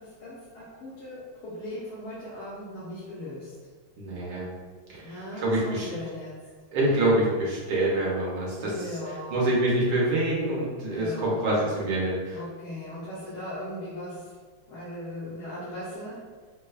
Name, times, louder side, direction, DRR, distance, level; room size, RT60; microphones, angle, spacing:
voice 1, 0.0-3.6 5.0-6.4 8.6-9.5 10.9-11.7 12.3-14.4 14.7-16.2, left 1 dB, 80° left, -10 dB, 1.7 m, -38 dB
voice 2, 4.0-4.5 4.9-5.9 6.7-9.0 9.3-12.4, right 1 dB, 75° right, -5 dB, 1.6 m, -26 dB
4.7 x 2.2 x 2.3 m, 1.5 s
omnidirectional pair, 2.3 m